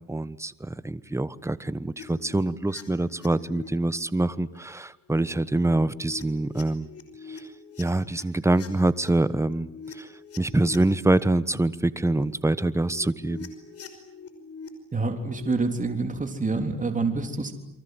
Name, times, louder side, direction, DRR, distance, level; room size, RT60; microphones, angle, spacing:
voice 1, 0.1-6.9 7.3-7.5 7.8-10.1 10.4-13.5, right 2 dB, 10° right, 16 dB, 1.2 m, -25 dB
sound 1, 2.0-3.7 4.0-4.6 5.2-5.4 5.8-8.2 8.5-11.2 11.8-12.2 12.7-14.7 15.1-15.5, left 5 dB, 50° left, 5.5 m, -44 dB
voice 2, 14.9-17.5, right 3 dB, 25° right, 6 dB, 3.6 m, -27 dB
29.0 x 24.0 x 8.1 m, 0.82 s
cardioid pair, 90°, 30 cm